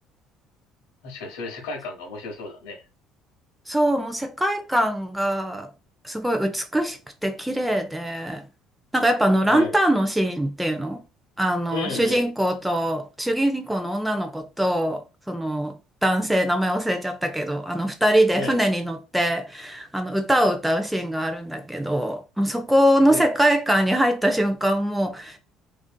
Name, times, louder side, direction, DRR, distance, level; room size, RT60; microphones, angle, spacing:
voice 1, 1.0-2.8 9.5-9.7 11.7-12.2 18.3-18.6 23.1-23.3, left 3 dB, 80° left, 0.7 m, -33 dB
voice 2, 3.7-5.7 6.0-8.4 8.9-11.0 11.4-25.4, equal, 5° right, 0.6 m, -23 dB
2.5 x 2.4 x 2.3 m
hypercardioid pair, 65°, 0 cm